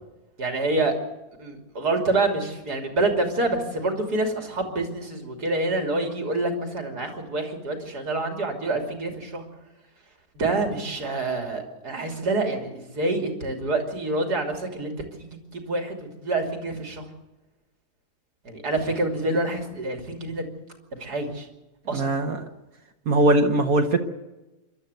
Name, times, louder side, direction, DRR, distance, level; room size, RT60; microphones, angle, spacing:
voice 1, 0.4-1.0 1.4-9.4 10.4-17.0 18.5-20.5 20.9-21.5 21.9-22.0, right 2 dB, 85° right, 4 dB, 3.5 m, -27 dB
voice 2, 21.9-22.4 23.1-24.0, right 1 dB, 65° right, 4 dB, 1.7 m, -20 dB
26.5 x 12.5 x 8.0 m, 1.1 s
omnidirectional pair, 1.7 m